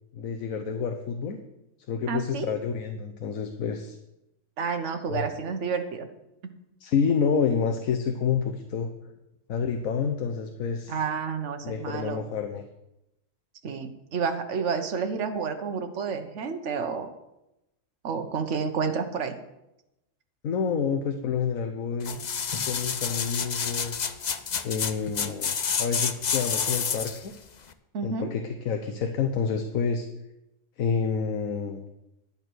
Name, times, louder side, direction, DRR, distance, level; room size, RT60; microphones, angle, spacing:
voice 1, 0.1-1.4 1.9-4.0 5.1-5.3 6.8-8.9 9.5-10.9 11.6-12.7 20.4-22.2 22.7-24.0 24.6-27.3 28.0-30.1 30.8-31.8, left 6 dB, 90° left, 5 dB, 1.3 m, -28 dB
voice 2, 2.1-2.6 4.6-6.1 6.4-6.5 10.9-12.2 13.6-17.1 18.0-19.3 27.9-28.3, right 5 dB, 60° right, 6 dB, 1.4 m, -30 dB
sound 1, 22.0-27.3 27.7-27.8, left 6 dB, 45° left, 0.6 m, -29 dB
11.0 x 8.8 x 6.2 m, 0.90 s
omnidirectional pair, 1.4 m